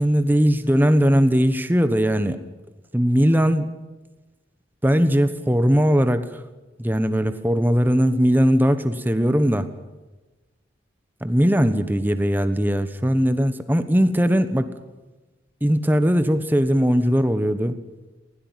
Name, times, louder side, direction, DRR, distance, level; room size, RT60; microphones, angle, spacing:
voice 1, 0.0-2.4 2.9-3.7 4.8-6.4 6.8-9.7 11.2-14.7 15.6-17.8, equal, 10° right, 10 dB, 1.1 m, -19 dB
20.5 x 16.5 x 9.2 m, 1.2 s
head